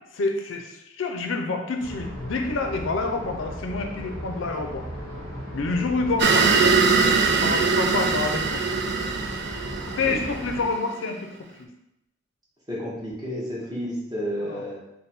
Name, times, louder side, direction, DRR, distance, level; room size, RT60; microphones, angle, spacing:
voice 1, 0.1-4.9 5.5-6.8 7.3-8.6 9.9-11.7 14.4-14.6, left 3 dB, 80° left, 4 dB, 0.5 m, -28 dB
sound 1, 1.8-10.6, equal, 80° right, 1.2 m, -36 dB
sound 2, 6.2-10.8, right 4 dB, 60° right, 0.4 m, -22 dB
voice 2, 7.3-7.7 9.7-10.2 12.7-14.8, equal, 20° right, -5 dB, 1.0 m, -32 dB
3.4 x 2.2 x 4.2 m, 0.84 s
head